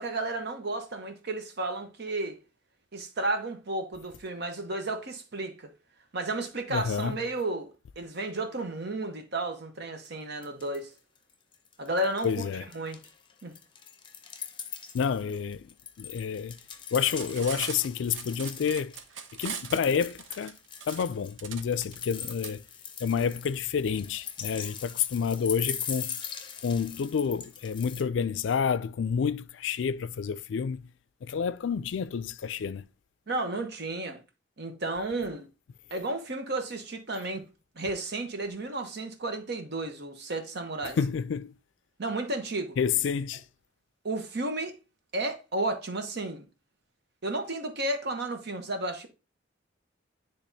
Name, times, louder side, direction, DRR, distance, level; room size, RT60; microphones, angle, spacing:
voice 1, 0.0-2.4 2.9-5.7 6.1-7.7 8.0-10.9 11.8-12.4 12.7-13.0 13.4-13.5 33.3-34.2 34.6-35.5 35.9-37.4 37.8-41.0 42.0-42.8 44.0-44.8 45.1-46.5 47.2-49.1, right 2 dB, 60° right, 1.0 m, -32 dB
voice 2, 6.7-7.2 12.2-12.6 14.9-15.6 16.0-16.5 16.9-18.9 19.4-20.5 20.9-22.6 23.0-26.2 26.6-30.8 31.2-32.8 41.0-41.5 42.8-43.4, left 6 dB, 70° left, 0.4 m, -29 dB
sound 1, 10.0-10.1 10.4-11.0 11.3-12.4 12.7-19.0 19.4-28.0, left 8 dB, 25° left, 0.7 m, -41 dB
Cutlery silverware, 16.9-22.5, right 7 dB, 75° right, 0.7 m, -40 dB
10.0 x 3.4 x 2.7 m
head